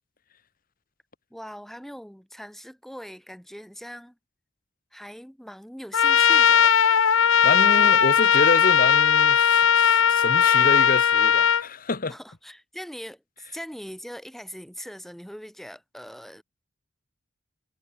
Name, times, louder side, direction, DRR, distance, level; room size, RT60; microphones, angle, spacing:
voice 1, 1.3-4.2 4.9-6.7 12.1-16.4, equal, ahead, 3.6 m, -41 dB
Trumpet, 5.9-11.6, left 7 dB, 85° left, 0.9 m, -18 dB
voice 2, 7.4-12.1, left 3 dB, 45° left, 1.2 m, -28 dB
head